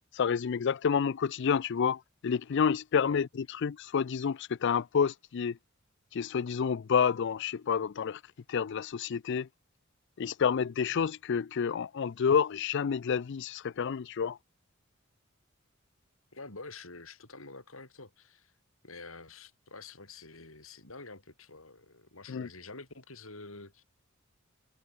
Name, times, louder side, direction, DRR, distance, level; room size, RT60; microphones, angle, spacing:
voice 1, 0.1-3.3 3.6-5.6 6.1-8.2 8.5-9.5 10.2-14.4 22.3-22.5, left 6 dB, 60° left, 0.4 m, -29 dB
voice 2, 16.3-18.5 18.8-23.8, left 3 dB, 85° left, 6.5 m, -48 dB
head